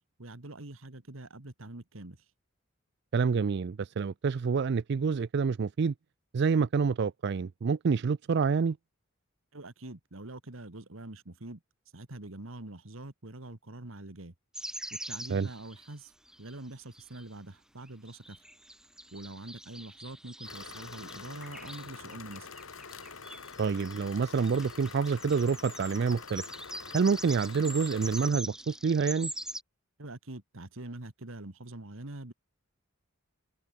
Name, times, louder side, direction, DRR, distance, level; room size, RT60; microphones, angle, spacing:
voice 1, 0.2-2.2 9.5-11.6 11.9-14.3 14.9-16.1 16.4-18.4 19.1-22.5 30.0-32.3, right 2 dB, 75° right, 2.0 m, -44 dB
voice 2, 3.1-5.9 6.3-8.8 15.3-15.5 23.6-26.4 26.9-29.3, right 5 dB, 55° right, 0.4 m, -27 dB
sound 1, 14.5-16.6 16.9-17.3 17.9-29.6, right 1 dB, 5° right, 5.6 m, -44 dB
sound 2, 20.4-28.3, left 5 dB, 75° left, 2.8 m, -46 dB
head